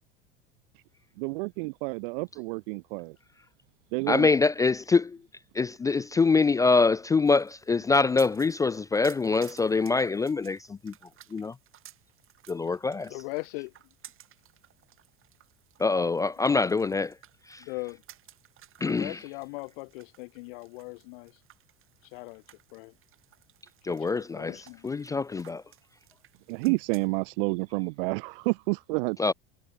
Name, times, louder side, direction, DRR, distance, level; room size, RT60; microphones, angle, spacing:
voice 1, 1.2-3.2 3.9-4.3 26.5-29.2, right 28 dB, 65° right, 1.9 m, -29 dB
voice 2, 4.1-5.2 5.5-10.9 11.3-11.5 12.5-13.1 15.8-17.1 17.5-17.6 18.8-19.2 23.8-24.6 24.8-25.6 29.2-29.3, left 4 dB, 10° left, 0.3 m, -24 dB
sound 1, 7.3-27.1, right 12 dB, 45° right, 7.6 m, -56 dB
voice 3, 13.1-13.7 17.6-18.0 18.9-21.4 22.0-22.4 22.7-22.9 23.9-24.9, left 29 dB, 65° left, 6.0 m, -39 dB
hypercardioid pair, 85°, 30 cm